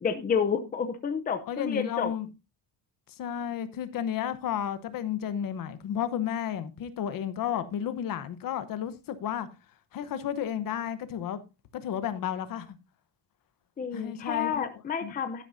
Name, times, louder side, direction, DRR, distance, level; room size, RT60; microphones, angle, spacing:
voice 1, 0.0-2.1 13.8-15.4, left 6 dB, 20° left, 0.7 m, -30 dB
voice 2, 1.5-2.3 3.1-9.5 9.9-11.4 11.7-12.8 13.9-14.7 15.0-15.2, left 9 dB, 45° left, 1.0 m, -32 dB
12.0 x 10.5 x 2.7 m
cardioid pair, 175°, 45 cm